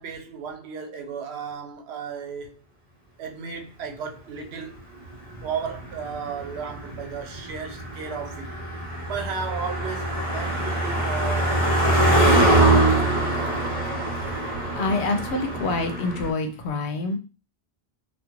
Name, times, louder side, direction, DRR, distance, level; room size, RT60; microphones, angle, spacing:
voice 1, 0.0-2.6 3.2-4.8 5.4-8.5 9.1-13.3, right 6 dB, 85° right, 0.8 m, -34 dB
Car passing by, 5.1-16.3, right 1 dB, 40° right, 0.9 m, -23 dB
voice 2, 14.5-17.2, left 3 dB, 85° left, 0.9 m, -27 dB
2.4 x 2.3 x 2.9 m
omnidirectional pair, 1.1 m